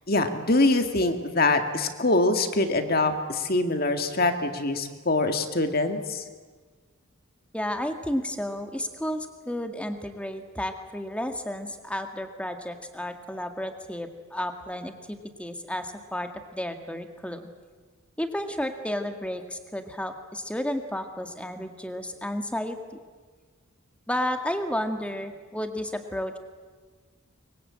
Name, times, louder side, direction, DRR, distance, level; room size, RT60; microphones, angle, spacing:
voice 1, 0.1-6.2, left 2 dB, 45° left, 7 dB, 2.0 m, -24 dB
voice 2, 7.5-17.5 18.2-22.8 24.1-26.4, left 1 dB, 5° left, 6 dB, 1.8 m, -32 dB
23.5 x 23.5 x 8.8 m, 1.5 s
head